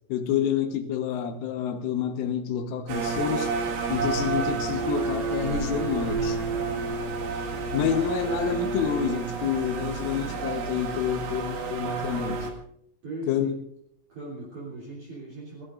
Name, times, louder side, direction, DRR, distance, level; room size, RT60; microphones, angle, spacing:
voice 1, 0.1-3.5 3.9-6.4 7.7-12.5 13.3-13.6, left 8 dB, 80° left, 6 dB, 3.7 m, -28 dB
sound 1, 2.9-12.5, right 4 dB, 85° right, 4.5 m, -30 dB
voice 2, 13.0-13.5 14.1-15.6, right 2 dB, 45° right, -4 dB, 4.2 m, -39 dB
29.5 x 16.5 x 2.5 m, 0.71 s
omnidirectional pair, 5.7 m